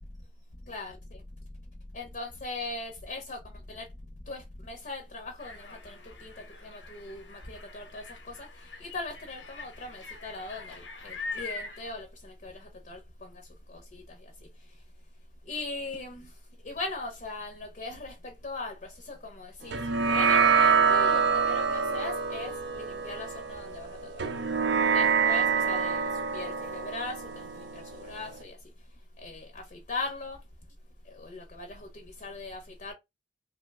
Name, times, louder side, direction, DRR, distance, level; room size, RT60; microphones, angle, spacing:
voice 1, 1.9-3.4 3.7-3.8 4.3-6.3 6.6-8.5 8.8-13.3 13.7-14.0 15.5-16.3 16.6-18.1 18.4-19.8 20.1-24.1 24.9-28.6 29.2-30.4 31.1-32.9, left 2 dB, 45° left, 0.5 m, -39 dB
sound 1, 5.4-11.9, left 4 dB, 85° left, 0.8 m, -43 dB
sound 2, 19.7-28.4, right 6 dB, 70° right, 0.5 m, -26 dB
2.9 x 2.1 x 3.3 m
head